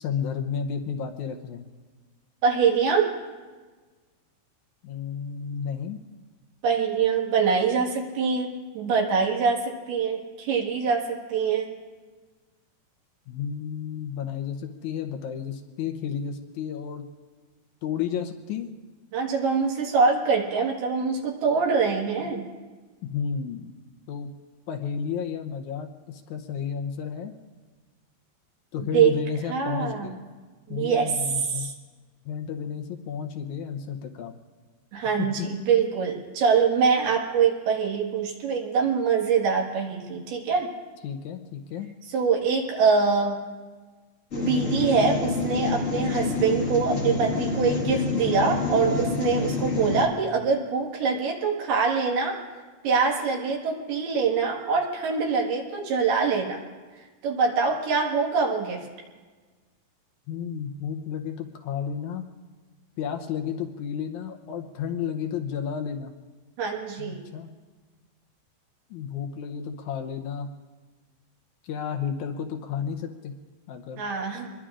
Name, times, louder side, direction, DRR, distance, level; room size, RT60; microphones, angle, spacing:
voice 1, 0.0-1.7 4.8-6.0 13.3-17.0 17.8-18.7 23.0-23.8 24.1-24.3 24.7-27.3 28.7-30.2 30.7-31.7 32.3-34.3 35.2-35.5 41.0-41.9 60.3-62.3 63.0-66.2 67.0-67.6 68.9-70.5 71.6-73.3 73.7-74.0, left 7 dB, 80° left, 4 dB, 1.7 m, -32 dB
voice 2, 2.4-3.1 6.6-11.7 19.1-22.5 28.9-29.1 29.5-30.1 30.7-31.7 34.9-40.7 42.1-43.4 44.3-52.4 52.8-56.6 57.2-58.9 66.6-67.3 74.0-74.5, right 5 dB, 75° right, -1 dB, 3.7 m, -24 dB
sound 1, 44.3-50.1, left 4 dB, 50° left, 0.9 m, -27 dB
26.5 x 21.5 x 2.5 m, 1.4 s
omnidirectional pair, 4.5 m